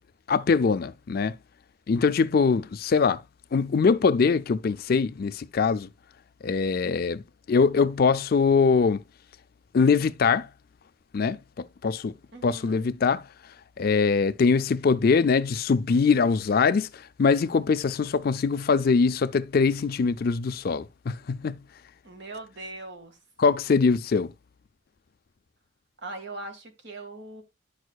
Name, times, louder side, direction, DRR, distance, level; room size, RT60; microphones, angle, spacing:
voice 1, 0.3-1.4 1.9-3.2 3.5-5.9 6.4-7.2 7.5-9.0 9.7-10.5 11.1-12.1 12.4-13.2 13.8-21.6 23.4-24.3, left 5 dB, 50° left, 0.4 m, -23 dB
voice 2, 12.3-12.8 22.0-23.2 26.0-27.4, right 2 dB, 60° right, 1.7 m, -40 dB
10.0 x 6.3 x 2.3 m
head